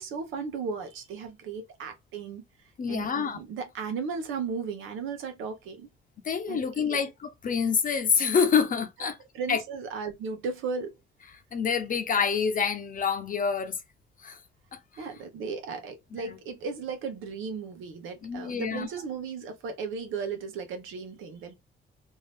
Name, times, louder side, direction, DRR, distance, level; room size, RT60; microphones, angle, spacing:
voice 1, 0.0-2.4 2.9-5.9 6.5-6.6 6.9-7.0 9.0-10.9 15.0-21.5, right 5 dB, 85° right, 0.9 m, -35 dB
voice 2, 2.8-3.4 6.2-9.2 9.5-9.6 11.5-13.8 14.2-14.4 14.7-15.0 16.1-16.3 18.2-18.9, left 6 dB, 45° left, 0.8 m, -27 dB
2.7 x 2.7 x 3.3 m
cardioid pair, 90°, 20 cm